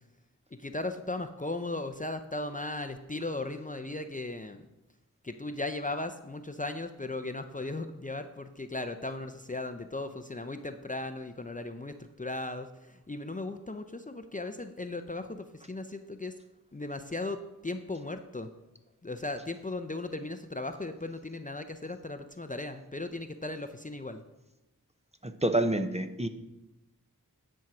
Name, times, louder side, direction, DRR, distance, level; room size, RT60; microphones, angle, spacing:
voice 1, 0.5-4.7 5.2-16.3 16.7-18.5 19.0-24.2, left 2 dB, 25° left, 7 dB, 0.6 m, -37 dB
voice 2, 25.2-26.3, right 1 dB, 20° right, 8 dB, 0.7 m, -28 dB
10.0 x 4.6 x 6.0 m, 0.97 s
cardioid pair, 40°, 35 cm